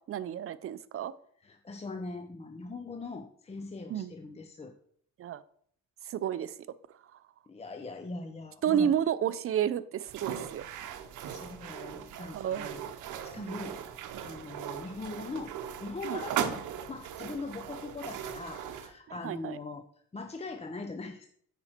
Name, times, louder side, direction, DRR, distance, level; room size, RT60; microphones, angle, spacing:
voice 1, 0.1-1.1 3.9-4.1 5.2-5.4 6.1-6.5 8.6-10.7 12.3-12.8 13.4-13.6 16.0-16.2 19.2-19.6, right 9 dB, 50° right, 16 dB, 0.5 m, -31 dB
voice 2, 1.4-4.8 7.5-9.0 11.2-12.9 13.2-13.8 14.2-19.8 20.1-21.3, left 3 dB, 20° left, 5 dB, 0.6 m, -41 dB
sound 1, 10.1-18.9, right 9 dB, 85° right, 0.8 m, -39 dB
8.7 x 5.1 x 4.3 m, 0.65 s
cardioid pair, 90°, 30 cm